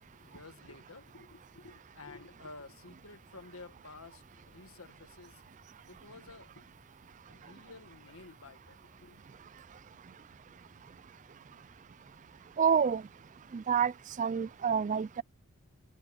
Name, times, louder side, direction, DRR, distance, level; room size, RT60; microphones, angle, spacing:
voice 1, 0.2-5.4 5.9-6.7 7.3-9.2, left 3 dB, 70° left, 1.7 m, -52 dB
voice 2, 12.6-13.0 13.5-13.9 14.2-15.2, right 7 dB, 35° right, 0.4 m, -28 dB
head